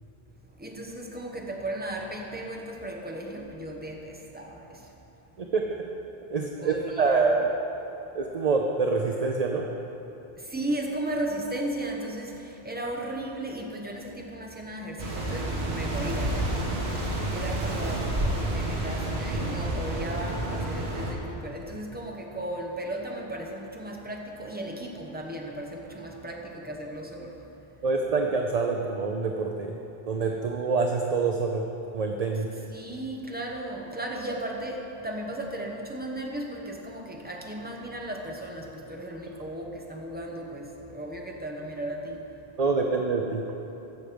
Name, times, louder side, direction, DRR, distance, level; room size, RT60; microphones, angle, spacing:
voice 1, 0.6-4.8 6.6-7.3 10.5-16.4 17.3-27.3 32.7-42.2, right 1 dB, 10° right, 0 dB, 1.0 m, -35 dB
voice 2, 5.4-5.8 6.3-7.5 8.1-9.7 27.8-29.8 30.1-31.7 31.9-32.5 42.6-43.4, right 4 dB, 45° right, 2 dB, 0.6 m, -26 dB
sound 1, 15.0-21.1, right 1 dB, 85° right, 1.7 m, -29 dB
15.0 x 6.4 x 5.1 m, 3.0 s
omnidirectional pair, 1.0 m